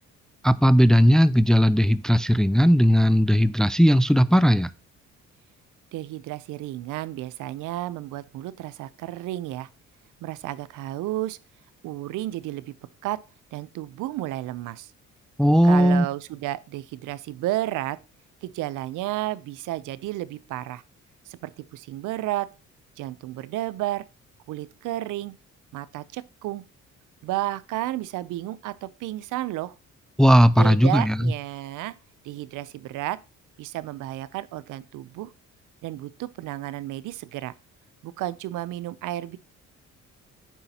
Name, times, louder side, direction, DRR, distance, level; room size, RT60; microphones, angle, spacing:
voice 1, 0.4-4.7 15.4-16.1 30.2-31.3, equal, ahead, 0.3 m, -17 dB
voice 2, 5.9-9.7 10.2-11.4 11.8-12.7 13.0-13.2 13.5-14.9 15.6-18.0 18.4-20.8 21.3-22.5 23.0-24.0 24.5-25.4 25.7-26.6 27.2-29.8 30.6-32.0 32.2-33.2 33.6-35.3 35.8-37.5 38.0-39.4, right 15 dB, 85° right, 0.6 m, -32 dB
9.4 x 7.1 x 2.8 m
cardioid pair, 90°, 30 cm